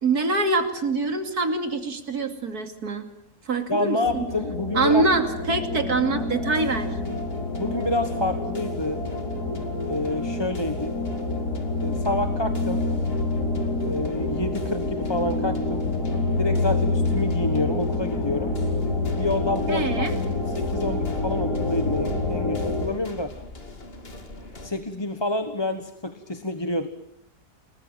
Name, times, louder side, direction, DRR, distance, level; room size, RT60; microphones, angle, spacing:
voice 1, 0.0-3.1 3.5-4.3 4.7-6.9 19.7-20.2, right 3 dB, 70° right, 7 dB, 3.2 m, -24 dB
voice 2, 3.7-5.1 7.6-9.0 9.9-11.0 11.8-12.8 13.8-15.9 16.4-18.6 19.1-23.3 24.5-26.9, left 2 dB, 15° left, 8 dB, 1.3 m, -28 dB
sound 1, 4.0-22.9, left 2 dB, 85° left, 4.5 m, -27 dB
sound 2, 6.2-24.7, left 1 dB, 35° left, 2.8 m, -43 dB
29.0 x 20.0 x 9.1 m, 0.76 s
omnidirectional pair, 1.7 m